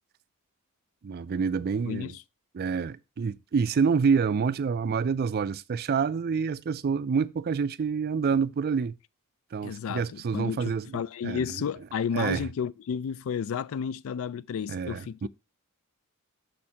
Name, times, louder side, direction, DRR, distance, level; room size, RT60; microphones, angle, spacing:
voice 1, 1.0-2.1 2.5-9.0 9.5-11.5 12.1-12.5 14.7-15.3, right 5 dB, 45° right, 0.4 m, -27 dB
voice 2, 1.9-2.2 9.6-15.3, left 7 dB, 65° left, 0.3 m, -32 dB
6.5 x 4.4 x 4.7 m
head